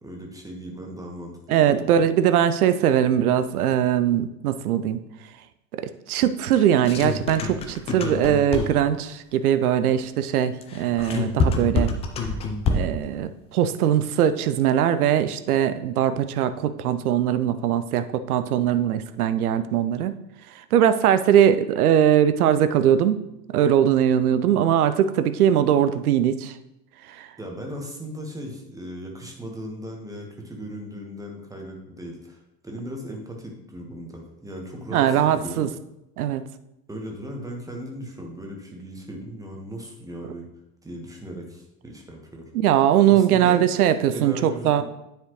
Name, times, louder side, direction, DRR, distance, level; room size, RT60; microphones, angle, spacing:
voice 1, 0.0-2.1 27.4-35.7 36.9-40.5 40.8-42.5 43.1-43.6 44.1-44.8, equal, 5° right, 1 dB, 1.3 m, -37 dB
voice 2, 1.5-5.0 5.8-11.9 12.7-20.1 20.7-23.2 23.5-26.5 27.1-27.3 34.9-35.7 36.2-36.4 42.5-44.8, right 10 dB, 65° right, 12 dB, 0.6 m, -21 dB
sound 1, 6.5-9.0 10.6-13.1, left 4 dB, 15° left, 0.3 m, -26 dB
9.4 x 4.9 x 3.1 m, 0.87 s
figure-of-eight pair, 75°, 50 cm